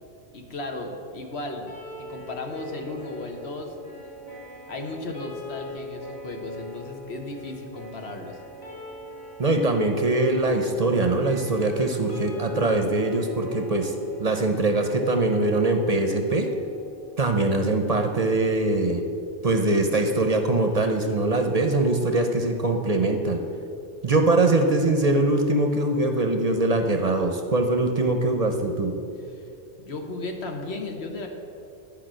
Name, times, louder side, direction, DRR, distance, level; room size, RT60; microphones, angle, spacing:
voice 1, 0.3-1.7 2.0-3.8 4.7-8.4 29.3-29.4 29.8-31.3, left 2 dB, 75° left, 3 dB, 1.4 m, -35 dB
sound 1, 1.7-17.7, left 1 dB, 45° left, 3.2 m, -42 dB
voice 2, 9.4-16.5 17.2-19.0 19.4-23.4 24.0-29.0, right 2 dB, 40° right, 5 dB, 0.7 m, -22 dB
11.0 x 5.2 x 7.6 m, 2.5 s
omnidirectional pair, 1.1 m